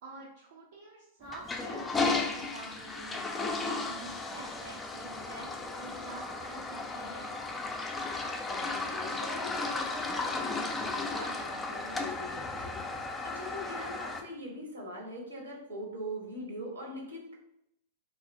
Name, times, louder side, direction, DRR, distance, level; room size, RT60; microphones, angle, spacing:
voice 1, 0.0-7.3, right 3 dB, 60° right, -3 dB, 0.5 m, -47 dB
Toilet flush, 1.3-14.2, left 3 dB, 15° left, 0.3 m, -35 dB
voice 2, 2.1-2.5 8.5-17.3, equal, 75° right, -1 dB, 0.9 m, -42 dB
2.7 x 2.4 x 2.5 m, 0.79 s
figure-of-eight pair, 100°, 0 cm